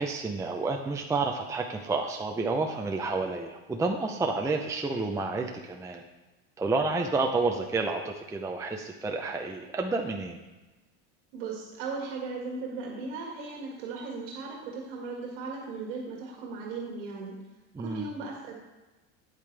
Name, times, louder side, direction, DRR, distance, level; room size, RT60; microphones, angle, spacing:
voice 1, 0.0-6.0 6.6-10.4 17.7-18.1, right 3 dB, 10° right, 2 dB, 0.6 m, -30 dB
voice 2, 11.3-17.4 17.8-18.5, right 4 dB, 85° right, -2 dB, 1.9 m, -37 dB
9.0 x 8.5 x 3.4 m, 1.1 s
supercardioid pair, 120°, 35 cm